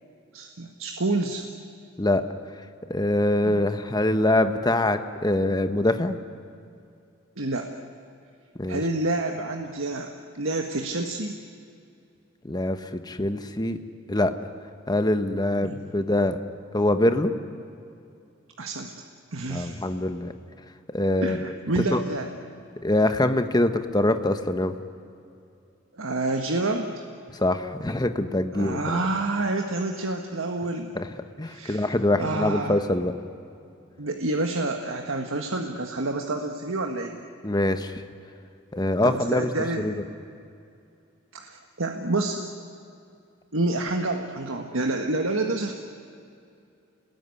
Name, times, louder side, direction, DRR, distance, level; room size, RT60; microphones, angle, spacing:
voice 1, 0.3-1.4 3.4-3.6 7.4-7.7 8.7-11.4 15.6-15.8 18.6-18.9 19.3-19.8 21.2-22.3 26.0-27.0 28.5-30.9 31.5-31.8 32.2-32.8 34.0-37.2 39.0-40.0 41.3-42.4 43.5-45.7, right 2 dB, 85° right, 3 dB, 1.6 m, -28 dB
voice 2, 2.9-6.2 8.6-8.8 12.4-13.8 14.1-14.3 14.9-16.4 16.7-17.3 19.5-20.3 20.9-22.0 22.8-24.8 27.3-29.0 30.9-31.1 31.4-33.1 37.4-38.0 38.7-39.5 39.8-40.0, left 1 dB, 20° left, 9 dB, 1.2 m, -24 dB
28.5 x 20.0 x 9.8 m, 2.5 s
head